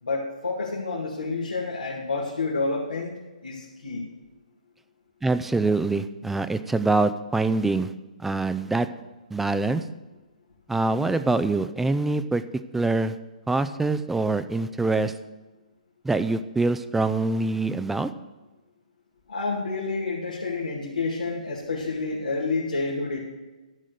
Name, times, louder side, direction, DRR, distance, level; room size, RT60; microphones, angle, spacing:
voice 1, 0.0-3.1 3.4-4.1 19.3-23.2, left 3 dB, 85° left, -5 dB, 2.3 m, -29 dB
voice 2, 5.2-7.9 8.2-8.9 9.3-9.8 10.7-12.4 12.7-13.2 13.5-15.1 16.0-18.1, right 3 dB, 5° right, 11 dB, 0.4 m, -24 dB
11.5 x 6.3 x 6.7 m, 1.2 s
hypercardioid pair, 135°, 4 cm